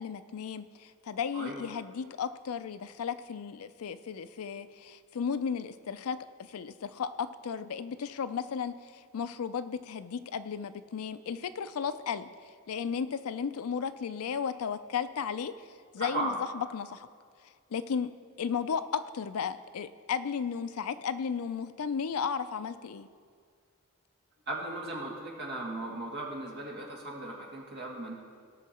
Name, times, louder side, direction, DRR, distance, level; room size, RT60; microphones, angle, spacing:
voice 1, 0.0-6.2 6.5-12.3 12.7-15.5 15.9-17.1 17.7-18.1 18.4-23.1, left 6 dB, 70° left, 13 dB, 0.4 m, -34 dB
voice 2, 1.3-1.7 16.0-16.4 24.5-28.1, right 2 dB, 50° right, -1 dB, 1.9 m, -37 dB
17.5 x 6.1 x 4.3 m, 2.1 s
head